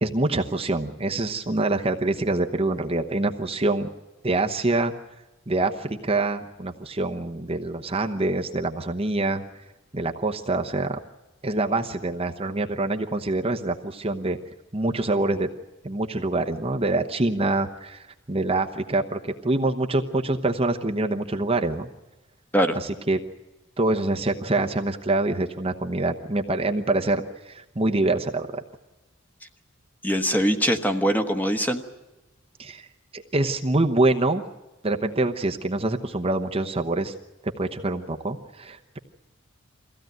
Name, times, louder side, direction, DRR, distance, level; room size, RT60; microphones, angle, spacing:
voice 1, 0.0-3.9 4.2-4.9 5.5-9.4 9.9-11.0 11.4-14.4 14.7-15.5 15.8-21.9 22.8-23.2 23.8-28.6 32.6-32.9 33.1-34.4 34.8-37.1 37.6-39.0, right 2 dB, 30° right, 4 dB, 1.0 m, -25 dB
voice 2, 30.0-31.8, equal, 10° left, 6 dB, 1.3 m, -22 dB
22.5 x 16.0 x 9.2 m, 1.1 s
head